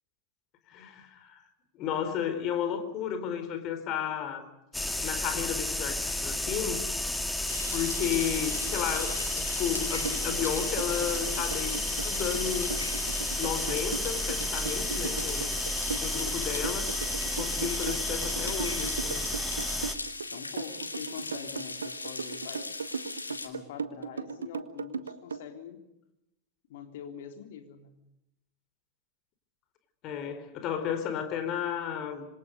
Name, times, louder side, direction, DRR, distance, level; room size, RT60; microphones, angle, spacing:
voice 1, 0.7-1.4 1.7-4.5 5.0-6.9 7.7-12.8 13.1-15.5 16.0-16.9 17.3-19.2 30.0-32.3, left 8 dB, 35° left, 4.2 m, -33 dB
sound 1, 4.7-20.0, left 1 dB, 5° left, 2.1 m, -32 dB
sound 2, 7.5-23.5, left 3 dB, 80° left, 2.7 m, -39 dB
sound 3, 10.0-25.4, right 5 dB, 70° right, 1.4 m, -37 dB
voice 2, 14.7-15.2 15.8-16.2 20.2-22.8 23.3-25.8 26.7-28.0, left 8 dB, 55° left, 3.7 m, -44 dB
26.5 x 26.0 x 5.3 m
figure-of-eight pair, 90°, 0 cm